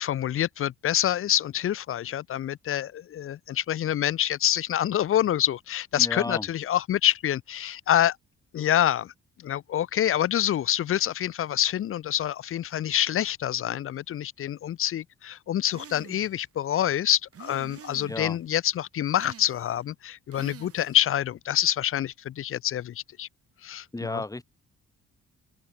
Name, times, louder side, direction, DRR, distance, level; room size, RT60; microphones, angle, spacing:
voice 1, 0.0-8.2 8.5-9.1 9.4-23.3 23.6-24.2, left 11 dB, 45° left, 0.5 m, -26 dB
voice 2, 6.0-6.5 18.1-18.4 23.9-24.4, left 2 dB, 10° left, 2.0 m, -33 dB
sound 1, 15.7-16.4 17.3-18.4 19.1-19.8 20.3-21.1, right 8 dB, 50° right, 2.1 m, -47 dB
cardioid pair, 90°, 30 cm